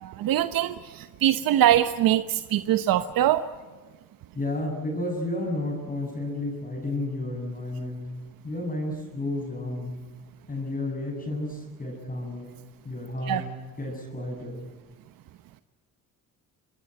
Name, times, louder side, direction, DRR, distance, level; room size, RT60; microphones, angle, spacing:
voice 1, 0.0-3.4 13.3-13.4, right 12 dB, 80° right, 11 dB, 1.0 m, -23 dB
voice 2, 4.3-8.1 8.4-10.0 10.5-12.6 12.8-13.5 13.8-14.6, left 2 dB, 25° left, -1 dB, 7.4 m, -32 dB
27.0 x 21.0 x 9.1 m, 1.3 s
cardioid pair, 115°, 34 cm